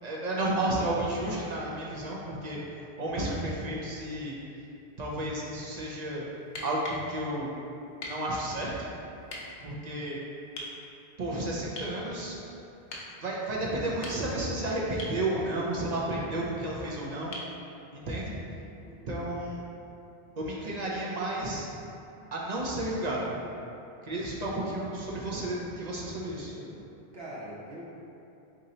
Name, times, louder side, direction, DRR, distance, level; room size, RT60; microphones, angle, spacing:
voice 1, 0.0-2.6 3.0-4.4 5.0-6.3 6.6-7.5 8.0-8.9 9.6-10.2 11.2-12.4 13.2-17.4 17.9-18.4 19.1-19.6 20.4-21.7 22.3-23.3 24.0-26.5, right 1 dB, 50° right, -4 dB, 0.6 m, -32 dB
sound 1, 6.4-7.1 8.0-8.2 9.3-9.4 10.6-10.8 11.8-12.0 12.9-13.1 13.8-14.5 15.0-15.2 17.3-17.6 19.4-19.5, left 1 dB, 50° left, 0.7 m, -40 dB
voice 2, 18.8-19.2 24.5-24.7 26.4-26.8 27.1-27.8, right 1 dB, 75° right, -6 dB, 1.1 m, -44 dB
3.7 x 2.7 x 4.1 m, 2.8 s
omnidirectional pair, 1.0 m